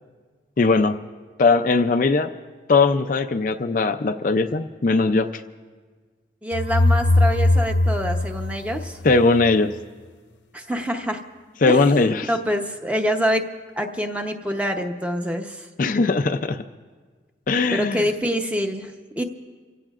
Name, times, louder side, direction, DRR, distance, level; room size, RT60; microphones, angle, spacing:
voice 1, 0.6-1.0 1.4-2.3 2.7-5.4 9.0-9.7 11.6-12.3 15.8-16.6 17.5-18.0, left 3 dB, 45° left, 7 dB, 0.4 m, -19 dB
voice 2, 6.4-9.0 10.5-11.2 11.7-13.4 13.8-15.7 17.7-19.2, equal, 5° right, 4 dB, 0.8 m, -26 dB
sound 1, 6.5-9.4, left 2 dB, 70° left, 0.9 m, -20 dB
29.0 x 16.5 x 2.4 m, 1.5 s
head